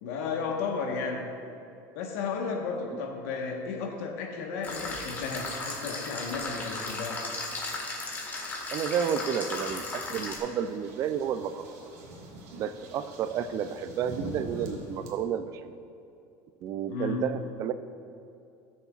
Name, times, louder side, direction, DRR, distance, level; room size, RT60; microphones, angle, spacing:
voice 1, 0.0-1.3 1.9-7.2 16.9-17.3, left 4 dB, 85° left, 1 dB, 1.4 m, -33 dB
sound 1, 4.6-10.4, left 2 dB, 20° left, 1.7 m, -36 dB
voice 2, 8.7-11.7 12.5-15.8 16.6-17.7, right 8 dB, 40° right, 12 dB, 0.5 m, -31 dB
sound 2, 10.4-15.1, right 1 dB, 85° right, 1.7 m, -43 dB
18.5 x 7.1 x 2.5 m, 2.6 s
cardioid pair, 150°, 8 cm